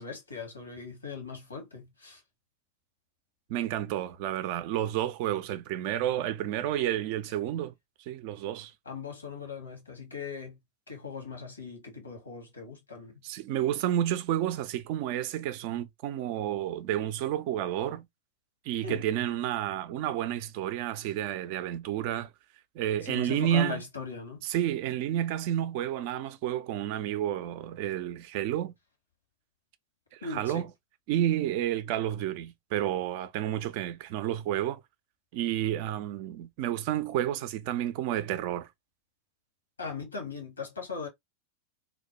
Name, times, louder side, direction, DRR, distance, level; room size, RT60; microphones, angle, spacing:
voice 1, 0.0-2.2 8.8-10.6 10.9-13.1 18.8-19.0 23.0-24.4 30.2-30.7 39.8-41.1, left 5 dB, 75° left, 1.0 m, -39 dB
voice 2, 3.5-7.7 8.0-8.7 13.2-18.1 18.6-22.3 22.8-23.8 24.4-28.7 30.1-30.7 31.1-34.8 35.3-38.7, right 11 dB, 45° right, 0.3 m, -30 dB
2.2 x 2.1 x 2.8 m
figure-of-eight pair, 90°, 0 cm